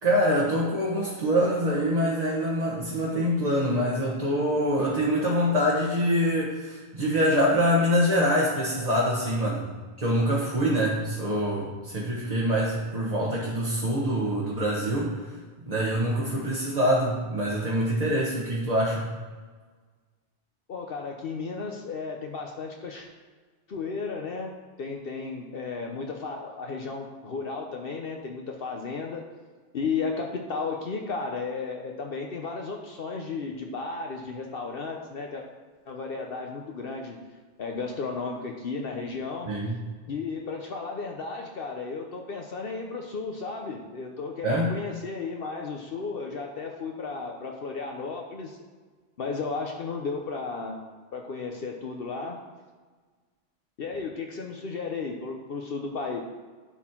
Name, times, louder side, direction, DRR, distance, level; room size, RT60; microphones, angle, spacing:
voice 1, 0.0-9.7 10.0-19.1 39.5-39.8 44.4-44.7, equal, 35° right, -5 dB, 1.3 m, -25 dB
voice 2, 20.7-23.1 23.7-24.5 24.8-29.2 29.7-35.4 35.9-37.2 37.6-39.5 40.1-48.6 49.2-50.8 51.1-52.4 53.8-56.2, left 4 dB, 60° left, 1 dB, 0.9 m, -34 dB
11.0 x 4.3 x 4.5 m, 1.4 s
omnidirectional pair, 1.1 m